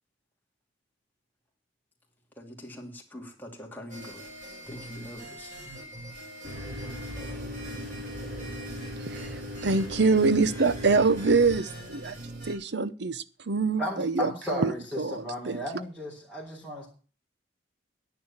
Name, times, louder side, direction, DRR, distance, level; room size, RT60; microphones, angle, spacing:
voice 1, 2.4-4.2 4.7-5.5, left 1 dB, 10° left, -1 dB, 2.8 m, -43 dB
sound 1, 3.9-12.6, right 1 dB, 40° right, 7.9 m, -42 dB
sound 2, 6.4-11.5, left 1 dB, 85° right, 8.0 m, -39 dB
voice 2, 9.6-12.2 12.5-15.6, right 4 dB, 65° right, 16 dB, 0.8 m, -25 dB
voice 3, 13.8-16.9, equal, 5° right, -5 dB, 3.7 m, -34 dB
10.5 x 9.3 x 7.2 m, 0.38 s
head